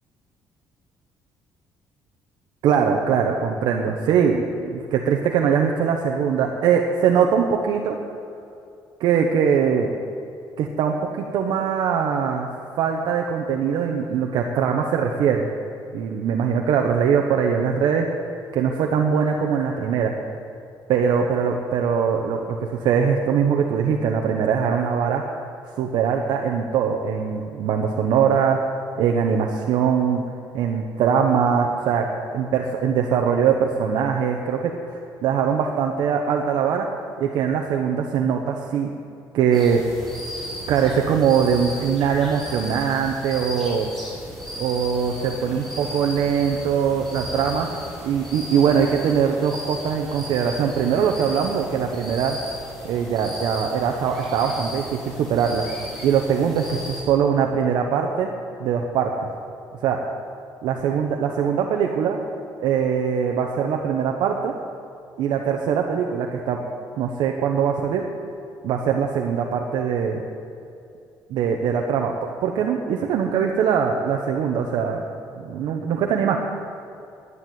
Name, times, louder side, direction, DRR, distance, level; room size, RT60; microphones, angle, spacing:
voice 1, 2.6-7.9 9.0-9.9 10.6-12.5 12.8-15.5 15.9-18.1 18.5-20.1 20.9-25.2 25.8-28.6 29.0-30.2 30.5-36.9 37.2-38.9 39.3-39.8 40.7-43.9 44.6-47.7 48.0-52.4 52.8-55.7 56.0-58.3 58.6-59.3 59.8-60.0 60.6-62.2 62.6-64.5 65.2-66.6 67.0-68.0 68.6-70.2 71.3-72.1 72.4-75.0 75.4-76.4, right 7 dB, 70° right, 2 dB, 1.0 m, -22 dB
sound 1, 39.5-57.0, equal, 5° left, 4.1 m, -36 dB
10.5 x 9.6 x 9.4 m, 2.5 s
cardioid pair, 170°, 8 cm